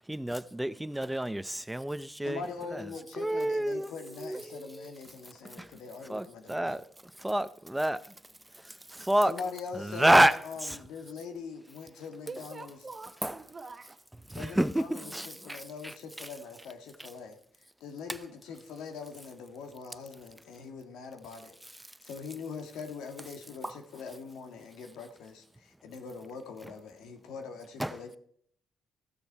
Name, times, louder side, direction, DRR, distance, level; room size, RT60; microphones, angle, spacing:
voice 1, 0.1-2.4 2.7-2.8 3.2-3.9 4.2-4.4 5.5-5.7 6.1-6.8 7.2-8.1 8.6-9.3 9.7-10.8 13.2-13.3 14.3-16.3 23.6-23.7 27.8-28.0, right 1 dB, 5° right, 0.6 m, -28 dB
voice 2, 2.2-6.8 9.1-12.8 14.3-17.4 17.8-28.2, left 5 dB, 90° left, 1.6 m, -42 dB
voice 3, 11.9-14.0, right 3 dB, 35° right, 1.0 m, -45 dB
14.5 x 7.0 x 4.6 m
cardioid pair, 90°, 0 cm